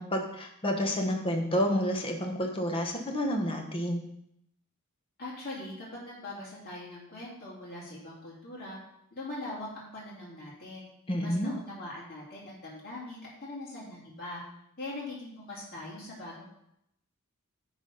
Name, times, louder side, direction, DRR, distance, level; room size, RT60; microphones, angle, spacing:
voice 1, 0.0-4.0 11.1-11.5, equal, 25° left, 2 dB, 1.1 m, -29 dB
voice 2, 5.2-8.8 9.1-10.9 11.2-14.4 14.8-16.4, left 2 dB, 45° left, -6 dB, 2.5 m, -41 dB
9.0 x 4.1 x 5.4 m, 0.77 s
head